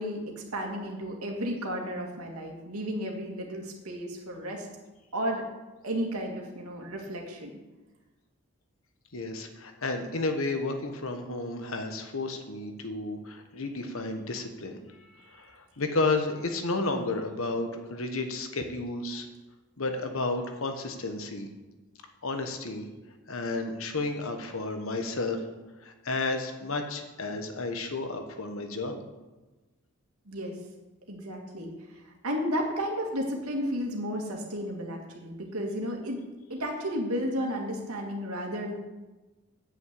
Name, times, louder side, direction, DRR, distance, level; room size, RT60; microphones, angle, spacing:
voice 1, 0.0-4.7 5.1-5.4 5.8-7.5 30.3-30.6 31.1-36.2 36.5-38.8, equal, 85° right, 1 dB, 2.1 m, -33 dB
voice 2, 9.1-19.3 19.8-21.5 22.2-22.9 23.3-25.4 25.8-29.0, left 3 dB, 70° left, 6 dB, 1.2 m, -32 dB
7.9 x 6.3 x 8.1 m, 1.2 s
head